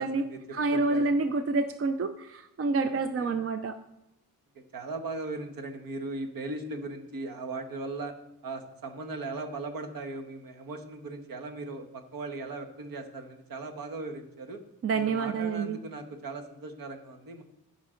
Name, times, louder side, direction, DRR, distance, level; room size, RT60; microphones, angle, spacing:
voice 1, 0.0-0.4 0.7-1.2 2.9-3.3 4.5-8.1 8.4-14.6 14.9-17.4, right 3 dB, 60° right, 6 dB, 1.3 m, -38 dB
voice 2, 0.5-3.7 14.8-15.8, right 3 dB, 40° right, 9 dB, 0.5 m, -28 dB
14.5 x 6.0 x 3.8 m, 0.90 s
wide cardioid pair, 150°, 38 cm